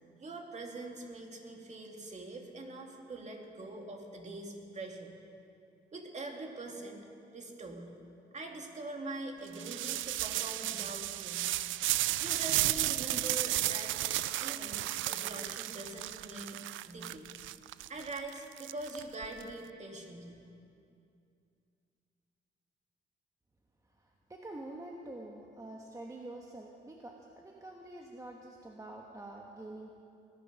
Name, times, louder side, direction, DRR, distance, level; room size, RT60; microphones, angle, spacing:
voice 1, 0.2-5.1 5.9-7.1 7.3-7.9 8.3-11.5 12.2-14.0 14.4-16.6 16.8-17.3 17.9-20.3, right 2 dB, 35° right, 1 dB, 2.4 m, -43 dB
sound 1, 9.5-19.4, right 15 dB, 80° right, 0.4 m, -33 dB
voice 2, 24.3-30.0, right 2 dB, 15° right, 0 dB, 1.2 m, -46 dB
19.5 x 10.0 x 6.2 m, 2.6 s
cardioid pair, 90°, 20 cm